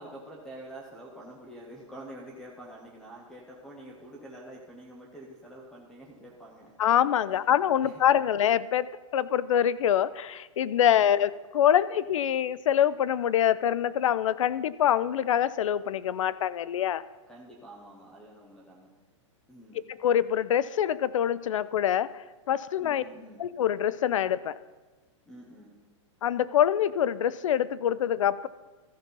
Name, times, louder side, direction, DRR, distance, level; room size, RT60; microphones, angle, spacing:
voice 1, 0.0-6.7 7.3-8.0 10.9-11.2 17.3-18.9 19.5-19.8 22.8-23.5 25.3-25.8, right 1 dB, 5° left, -2 dB, 0.7 m, -47 dB
voice 2, 6.8-17.0 19.9-23.0 23.4-24.6 26.2-28.5, left 10 dB, 80° left, 18 dB, 0.5 m, -25 dB
14.0 x 5.9 x 5.3 m, 1.2 s
hypercardioid pair, 180°, 16 cm